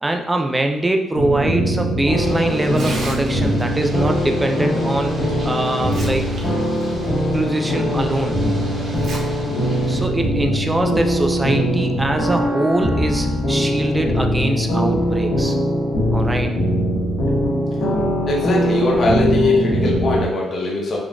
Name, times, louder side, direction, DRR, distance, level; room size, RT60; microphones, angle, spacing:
voice 1, 0.0-5.1 5.4-6.3 7.3-8.4 9.9-15.6 16.1-16.5 17.3-17.4, right 1 dB, 15° right, 4 dB, 0.4 m, -22 dB
sound 1, 1.1-20.3, equal, 70° left, 0.9 m, -21 dB
Ocean / Boat Water vehicle, 2.2-10.0, right 1 dB, 40° right, 1.3 m, -36 dB
Tearing, 2.6-3.6 5.1-5.2 5.7-6.4 6.8-6.9 7.6-7.7 8.9-9.2 9.6-9.7 10.5-10.8, right 2 dB, 60° right, 0.6 m, -33 dB
voice 2, 18.3-21.0, left 3 dB, 45° left, -3 dB, 0.7 m, -20 dB
3.8 x 2.4 x 2.2 m, 0.87 s
cardioid pair, 90°, 0 cm